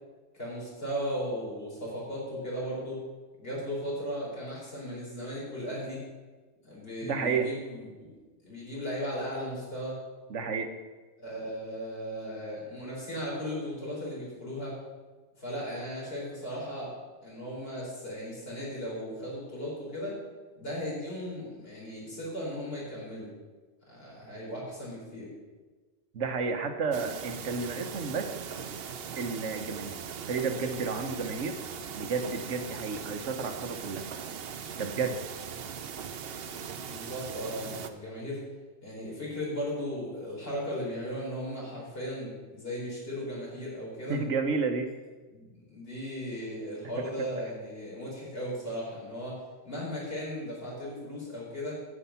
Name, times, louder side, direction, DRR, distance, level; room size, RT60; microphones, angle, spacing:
voice 1, 0.3-3.0 3.4-6.0 6.6-8.1 8.4-10.0 11.2-14.7 15.4-16.9 17.2-20.2 20.6-23.3 23.9-25.3 36.8-38.4 38.8-44.2 45.3-49.4 49.6-51.8, equal, 55° left, -5 dB, 4.4 m, -36 dB
voice 2, 7.0-7.5 10.3-10.7 26.1-28.3 29.2-30.0 30.3-31.6 32.0-34.0 34.8-35.2 44.1-44.9, right 4 dB, 85° right, 6 dB, 1.3 m, -31 dB
sound 1, 26.9-37.9, right 7 dB, 60° right, 0.9 m, -40 dB
9.8 x 8.4 x 5.7 m, 1.3 s
omnidirectional pair, 1.2 m